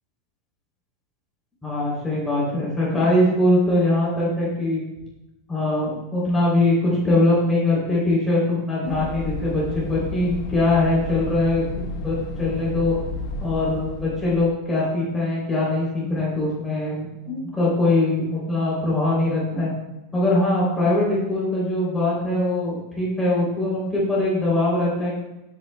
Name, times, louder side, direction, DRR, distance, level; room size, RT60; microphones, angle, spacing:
voice 1, 1.6-4.8 5.5-11.7 12.0-12.9 13.4-19.7 20.1-25.1, left 2 dB, 5° left, -7 dB, 3.1 m, -22 dB
sound 1, 8.9-14.5, left 3 dB, 50° left, 1.1 m, -32 dB
14.5 x 8.6 x 2.2 m, 0.98 s
supercardioid pair, 180°, 2 cm